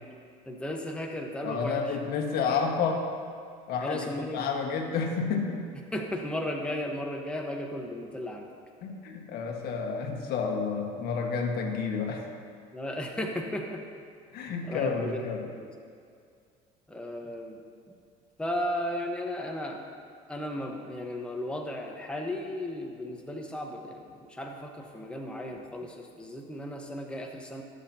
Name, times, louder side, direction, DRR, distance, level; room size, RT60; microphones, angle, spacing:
voice 1, 0.5-1.8 3.8-4.5 5.9-8.5 12.7-13.8 14.7-15.7 16.9-17.6 18.4-19.8 20.3-24.0 24.3-27.6, left 1 dB, 5° left, 1 dB, 1.2 m, -35 dB
voice 2, 1.4-3.1 3.7-5.7 8.8-12.3 14.3-15.5, left 5 dB, 65° left, 2 dB, 1.6 m, -30 dB
22.5 x 7.5 x 2.9 m, 2.2 s
supercardioid pair, 100°, 17 cm